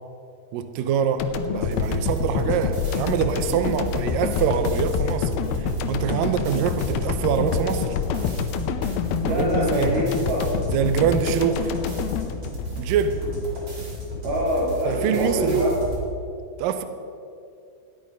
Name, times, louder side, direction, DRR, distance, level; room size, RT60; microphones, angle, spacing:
voice 1, 0.5-7.9 9.2-10.1 10.7-11.7 12.8-13.2 14.9-15.6 16.6-16.8, right 7 dB, 85° right, 9 dB, 2.0 m, -25 dB
sound 1, 1.2-13.4, left 8 dB, 75° left, 2.4 m, -27 dB
sound 2, 1.6-16.1, right 2 dB, 40° right, 3.6 m, -33 dB
voice 2, 9.2-10.5 14.2-15.7, equal, 65° right, -4 dB, 4.9 m, -24 dB
15.0 x 9.8 x 5.3 m, 2.5 s
omnidirectional pair, 4.7 m